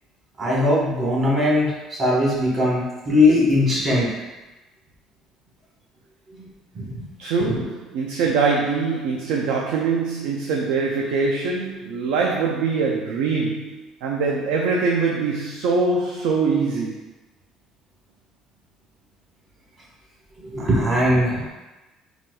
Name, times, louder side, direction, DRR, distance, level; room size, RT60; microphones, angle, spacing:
voice 1, 0.4-4.1 6.4-6.5 6.7-7.1 7.5-7.6 20.4-21.5, left 1 dB, 40° right, -5 dB, 1.1 m, -20 dB
voice 2, 7.2-17.1, right 4 dB, 85° right, 0 dB, 0.3 m, -23 dB
4.2 x 2.3 x 2.2 m, 1.1 s
cardioid pair, 130°, 0 cm